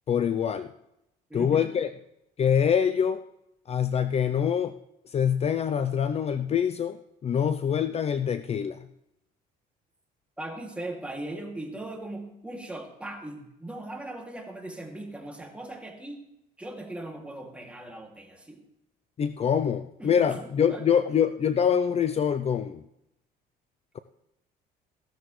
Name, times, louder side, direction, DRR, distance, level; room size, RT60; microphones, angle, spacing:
voice 1, 0.1-0.7 1.3-1.9 2.4-3.2 3.7-4.7 5.0-7.0 7.2-8.9 19.2-22.8, left 8 dB, 40° left, 11 dB, 0.6 m, -25 dB
voice 2, 1.3-1.7 10.4-16.2 16.6-18.6 20.0-20.9, right 1 dB, 5° right, 1 dB, 2.5 m, -39 dB
15.5 x 12.5 x 3.2 m, 0.83 s
cardioid pair, 110°, 17 cm